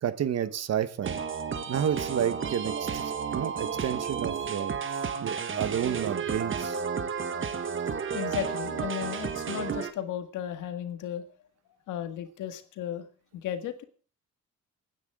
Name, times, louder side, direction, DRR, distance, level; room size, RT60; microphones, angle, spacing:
voice 1, 0.0-1.2 1.7-4.8 5.2-6.8, right 9 dB, 55° right, 13 dB, 1.2 m, -30 dB
sound 1, 1.0-9.9, right 6 dB, 40° right, 1.4 m, -32 dB
voice 2, 8.1-11.2 11.9-13.0 13.3-13.8, left 10 dB, 85° left, 8 dB, 1.8 m, -35 dB
28.5 x 9.6 x 3.7 m, 0.38 s
cardioid pair, 90°, 30 cm